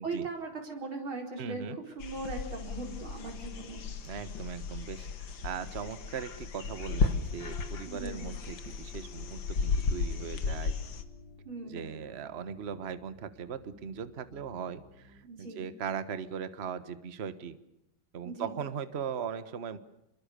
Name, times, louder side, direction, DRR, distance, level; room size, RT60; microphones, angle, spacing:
voice 1, 0.0-3.8 7.9-8.2 11.5-11.9 15.2-15.7 18.2-18.5, right 3 dB, 70° right, 3 dB, 5.5 m, -39 dB
voice 2, 1.4-1.8 4.0-10.8 11.6-17.6 18.1-19.8, right 7 dB, 35° right, 13 dB, 1.3 m, -39 dB
sound 1, 2.0-11.0, left 4 dB, 65° left, 2.3 m, -34 dB
sound 2, 7.3-15.2, left 2 dB, 30° left, 3.7 m, -53 dB
27.5 x 22.5 x 6.9 m, 0.86 s
omnidirectional pair, 2.3 m